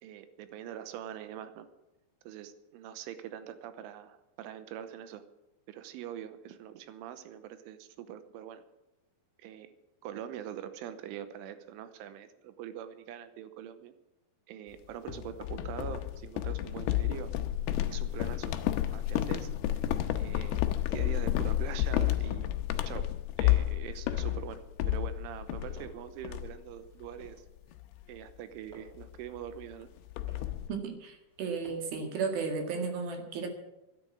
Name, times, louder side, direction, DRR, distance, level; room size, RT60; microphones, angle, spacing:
voice 1, 0.0-1.7 2.2-5.2 5.7-8.6 9.4-9.7 10.0-13.9 14.5-17.3 17.9-18.6 18.9-19.5 20.2-20.6 20.9-22.5 22.9-27.5 28.1-29.9, right 10 dB, 85° right, 11 dB, 3.4 m, -43 dB
sound 1, 15.1-25.9 26.2-26.7 27.0-27.3 27.7-27.9 29.0-29.1 29.4-29.5 29.7-30.7, left 13 dB, 85° left, 2.3 m, -31 dB
sound 2, 23.8-24.6 25.3-26.2 26.8-27.5 28.2-29.1 29.8-30.6 31.3-32.1, right 2 dB, 25° right, 3.1 m, -55 dB
voice 2, 30.7-33.5, right 5 dB, 60° right, 4 dB, 3.3 m, -34 dB
12.0 x 10.5 x 9.3 m, 0.96 s
omnidirectional pair, 5.5 m